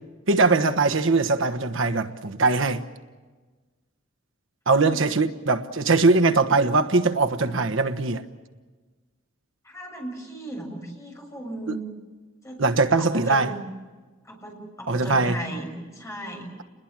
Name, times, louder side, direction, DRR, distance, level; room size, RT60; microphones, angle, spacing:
voice 1, 0.3-2.8 4.7-8.2 12.6-13.5 14.9-15.3, right 3 dB, 70° right, 1.3 m, -21 dB
voice 2, 9.6-11.8 12.4-12.7 13.0-13.6 14.2-16.5, right 1 dB, 15° left, 7.1 m, -36 dB
29.5 x 21.0 x 7.5 m
head